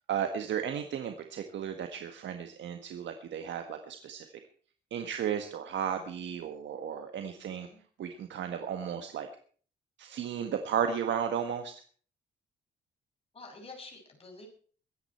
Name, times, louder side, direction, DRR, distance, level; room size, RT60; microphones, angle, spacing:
voice 1, 0.1-4.2 4.9-7.7 8.0-9.3 10.0-11.7, right 8 dB, 75° right, 7 dB, 1.6 m, -34 dB
voice 2, 7.4-7.8 13.3-14.5, left 3 dB, 30° left, 1 dB, 6.9 m, -49 dB
22.5 x 10.0 x 4.4 m, 0.44 s
cardioid pair, 115°, 19 cm